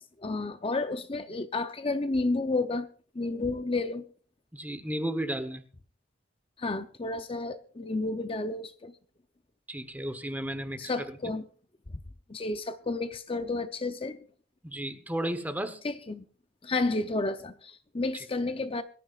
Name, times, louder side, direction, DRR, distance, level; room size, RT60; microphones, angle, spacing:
voice 1, 0.2-2.9 3.2-4.0 6.6-8.9 10.8-11.5 12.3-14.2 15.8-16.2 16.6-18.8, left 2 dB, 30° left, 0.6 m, -31 dB
voice 2, 4.5-5.6 9.7-11.3 14.6-15.8 18.1-18.3, right 1 dB, 10° right, 1.0 m, -34 dB
23.0 x 14.0 x 2.4 m
head